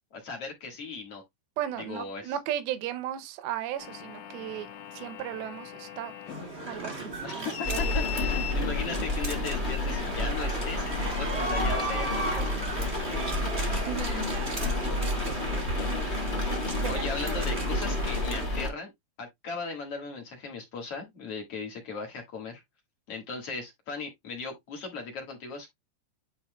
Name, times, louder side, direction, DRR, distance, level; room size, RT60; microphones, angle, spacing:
voice 1, 0.1-1.2 1.8-2.4 7.2-12.9 16.9-18.9 19.2-22.6 23.1-25.7, left 4 dB, 60° left, 1.6 m, -37 dB
voice 2, 1.6-4.7 4.9-6.1 6.7-8.0 13.9-15.4 16.7-17.4, right 11 dB, 80° right, 2.2 m, -36 dB
sound 1, 3.8-10.1, left 10 dB, 85° left, 3.3 m, -41 dB
sound 2, 6.3-18.5, right 2 dB, 30° right, 1.1 m, -36 dB
sound 3, 7.6-18.7, left 2 dB, 35° left, 1.0 m, -30 dB
10.5 x 4.2 x 2.2 m
omnidirectional pair, 5.1 m